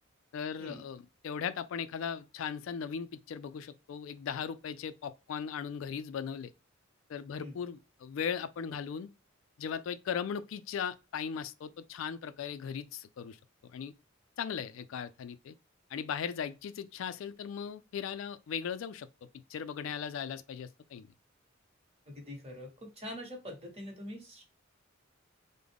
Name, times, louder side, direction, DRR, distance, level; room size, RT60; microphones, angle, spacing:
voice 1, 0.3-6.5 7.1-9.1 9.6-13.4 13.7-13.9 14.4-15.5 15.9-19.1 19.5-21.1, left 7 dB, 70° left, 0.3 m, -38 dB
voice 2, 22.1-24.4, left 1 dB, 30° right, 1.2 m, -44 dB
3.6 x 2.1 x 3.4 m
head